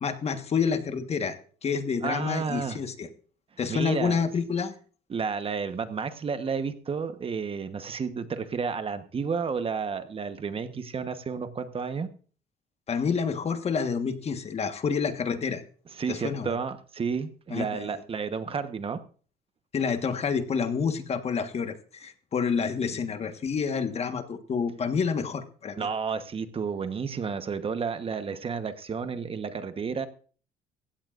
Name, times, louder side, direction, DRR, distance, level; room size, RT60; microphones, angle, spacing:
voice 1, 0.0-3.1 3.6-4.8 12.9-15.6 16.1-16.5 17.5-18.0 19.7-25.9, left 6 dB, 40° left, 8 dB, 1.4 m, -28 dB
voice 2, 2.0-2.8 3.7-4.2 5.1-12.1 15.9-19.0 25.8-30.1, right 5 dB, 35° right, 10 dB, 1.1 m, -31 dB
16.0 x 16.0 x 2.5 m, 0.42 s
cardioid pair, 110°, 17 cm